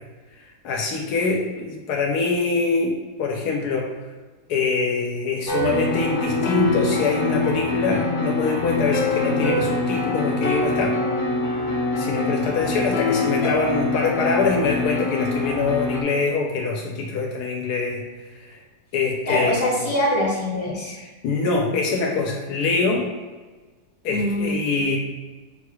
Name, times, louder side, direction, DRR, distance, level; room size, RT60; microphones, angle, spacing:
voice 1, 0.4-3.9 4.5-11.0 12.0-18.0 18.4-18.6 18.9-19.8 21.0-23.1 24.0-25.0, left 4 dB, 80° left, 0 dB, 1.1 m, -24 dB
sound 1, 5.5-16.0, left 3 dB, 55° left, 0.9 m, -24 dB
voice 2, 19.3-21.0 24.1-24.5, left 1 dB, 20° left, -7 dB, 1.4 m, -23 dB
6.1 x 3.0 x 2.3 m, 1.3 s
omnidirectional pair, 1.7 m